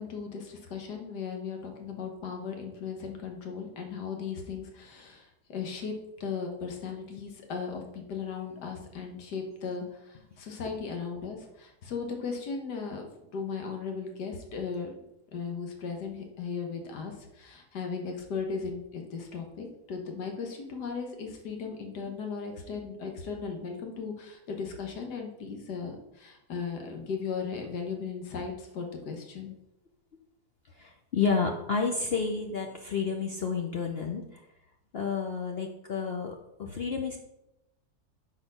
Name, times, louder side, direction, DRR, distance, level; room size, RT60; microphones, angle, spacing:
voice 1, 0.0-5.9 6.2-13.1 13.3-14.9 15.3-29.5, left 5 dB, 80° left, 3 dB, 1.7 m, -37 dB
voice 2, 30.7-34.5 34.9-37.2, left 5 dB, 60° left, 2 dB, 0.6 m, -30 dB
6.2 x 4.9 x 5.4 m, 0.86 s
omnidirectional pair, 1.7 m